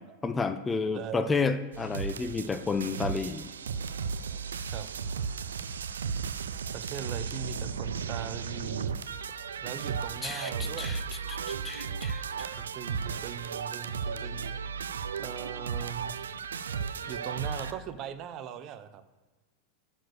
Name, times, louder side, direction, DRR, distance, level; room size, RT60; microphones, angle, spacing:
voice 1, 0.2-3.5 10.2-11.0 11.3-12.6, left 4 dB, 15° left, 10 dB, 0.6 m, -31 dB
voice 2, 0.9-1.4 4.7-4.9 6.7-9.0 9.6-10.9 12.6-14.5 15.2-16.1 17.1-19.0, right 9 dB, 45° right, 11 dB, 0.7 m, -40 dB
sound 1, 1.7-17.7, right 6 dB, 90° right, 0.4 m, -35 dB
10.0 x 4.5 x 6.5 m, 1.2 s
hypercardioid pair, 105°, 0 cm